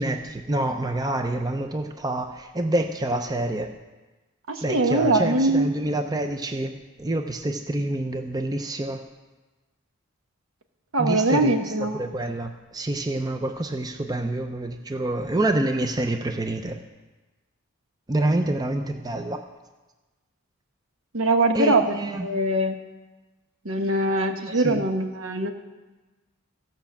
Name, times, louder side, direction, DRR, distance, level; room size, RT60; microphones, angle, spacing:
voice 1, 0.0-3.7 4.6-9.0 11.0-11.5 11.9-16.8 18.1-19.4 21.5-22.3 24.5-24.8, right 1 dB, 20° right, 6 dB, 0.5 m, -27 dB
voice 2, 4.5-5.7 10.9-12.0 21.1-22.8 23.6-25.5, right 2 dB, 70° right, 6 dB, 1.1 m, -22 dB
15.5 x 5.8 x 7.2 m, 1.2 s
head